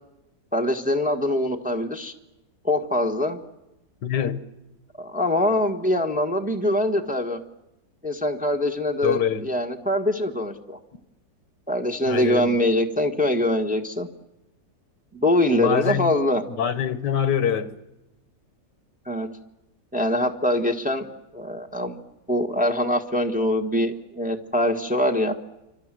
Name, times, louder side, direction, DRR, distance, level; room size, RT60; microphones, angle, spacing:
voice 1, 0.5-2.1 2.6-3.4 5.0-7.4 8.0-10.8 11.7-14.1 15.1-16.4 19.1-19.3 19.9-21.1 21.3-22.0 22.3-25.4, left 1 dB, 5° right, 3 dB, 1.4 m, -23 dB
voice 2, 4.0-4.4 9.0-9.5 12.1-12.6 15.6-16.1 16.5-17.7, left 8 dB, 75° left, 13 dB, 1.8 m, -24 dB
28.0 x 25.5 x 7.7 m, 0.95 s
omnidirectional pair, 1.9 m